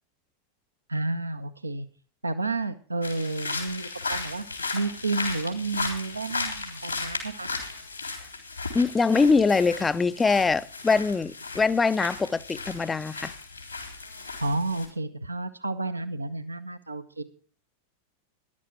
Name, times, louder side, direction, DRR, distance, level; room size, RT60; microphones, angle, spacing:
voice 1, 0.9-1.9 2.2-4.4 4.7-7.5 14.4-17.2, right 3 dB, 80° right, 0.8 m, -31 dB
sound 1, 3.0-14.9, left 3 dB, 85° left, 3.4 m, -35 dB
voice 2, 8.7-13.3, left 4 dB, 15° left, 0.5 m, -23 dB
14.0 x 11.0 x 4.6 m
figure-of-eight pair, 90°, 0 cm